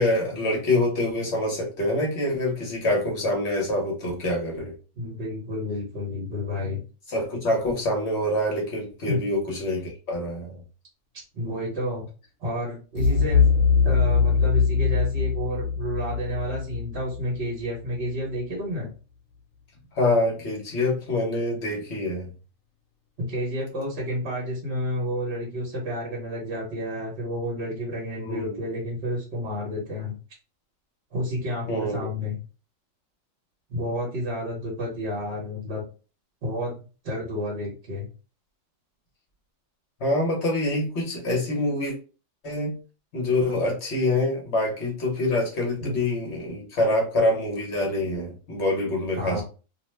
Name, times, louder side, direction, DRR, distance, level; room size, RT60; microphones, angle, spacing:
voice 1, 0.0-4.7 7.1-10.5 20.0-22.3 28.2-28.6 31.7-32.1 40.0-41.9 42.4-42.7 43.1-49.4, left 1 dB, 60° left, -1 dB, 1.2 m, -25 dB
voice 2, 5.0-6.8 9.1-9.2 11.3-12.1 12.4-13.5 13.8-18.9 23.3-30.1 31.1-32.4 33.7-35.8 36.4-38.1 45.8-46.0 49.2-49.4, equal, 55° right, -3 dB, 1.1 m, -30 dB
sound 1, 13.0-17.8, left 5 dB, 80° left, 1.1 m, -22 dB
2.7 x 2.0 x 3.2 m, 0.34 s
omnidirectional pair, 1.4 m